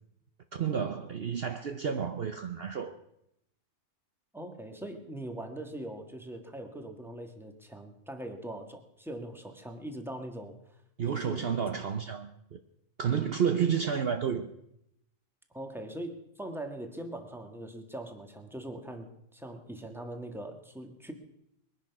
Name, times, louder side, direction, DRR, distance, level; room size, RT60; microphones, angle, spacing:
voice 1, 0.5-3.0 11.0-12.6 13.0-14.5, right 7 dB, 55° right, 7 dB, 0.9 m, -31 dB
voice 2, 4.3-10.6 11.1-11.5 15.5-21.1, right 1 dB, ahead, 4 dB, 1.7 m, -41 dB
21.5 x 10.5 x 6.0 m, 0.79 s
omnidirectional pair, 1.3 m